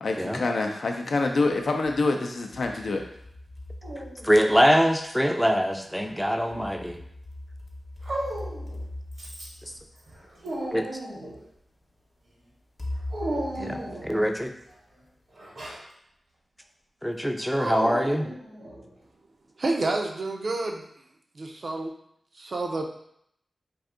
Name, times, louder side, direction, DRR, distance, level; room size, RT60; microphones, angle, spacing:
voice 1, 0.0-3.0, left 3 dB, 75° left, 3 dB, 0.4 m, -26 dB
sound 1, 1.0-2.0 2.5-4.9 6.1-10.5 11.3-11.4 12.8-14.7, left 1 dB, 30° left, 0.7 m, -40 dB
Dog, 3.8-4.7 5.7-6.6 8.0-8.8 9.2-9.7 10.1-11.4 13.1-14.2 15.4-15.8 17.6-18.9, right 1 dB, 80° right, 0.9 m, -35 dB
voice 2, 4.2-7.0 9.6-9.7 10.7-10.9 13.6-14.5 17.0-18.3, equal, ahead, 5 dB, 0.4 m, -23 dB
voice 3, 19.6-20.9 21.3-21.9 22.3-22.8, right 2 dB, 60° right, 2 dB, 0.4 m, -29 dB
2.6 x 2.3 x 3.6 m, 0.72 s
cardioid pair, 55°, 0 cm